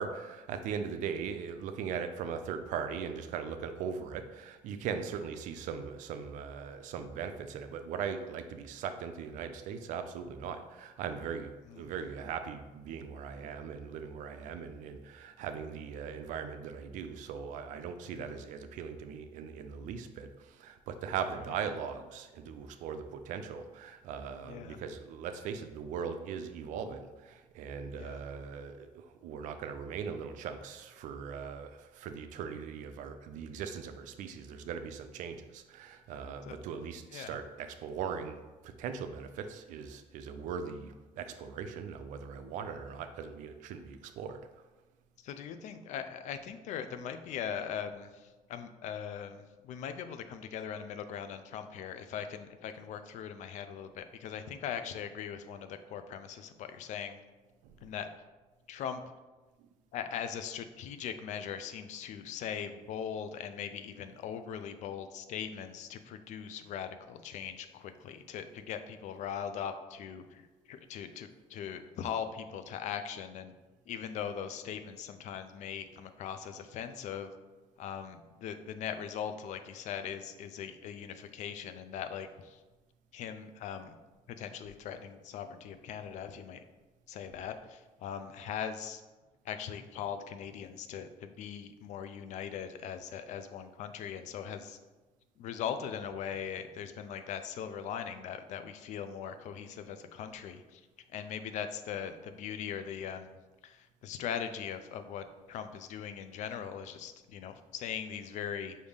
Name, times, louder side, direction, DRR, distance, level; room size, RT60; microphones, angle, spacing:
voice 1, 0.0-11.5 11.8-44.4 57.6-57.8 59.6-59.7, right 6 dB, 75° right, 8 dB, 0.4 m, -39 dB
voice 2, 24.4-24.8 28.0-28.2 36.5-37.4 45.2-57.2 57.8-58.1 58.7-59.0 59.9-73.5 73.9-77.3 77.8-82.6 83.1-84.0 84.3-86.6 87.1-89.0 89.4-94.8 95.4-100.8 101.1-103.3 103.6-108.8, left 8 dB, 70° left, 9 dB, 0.4 m, -40 dB
4.9 x 2.6 x 3.5 m, 1.2 s
cardioid pair, 100°, 13 cm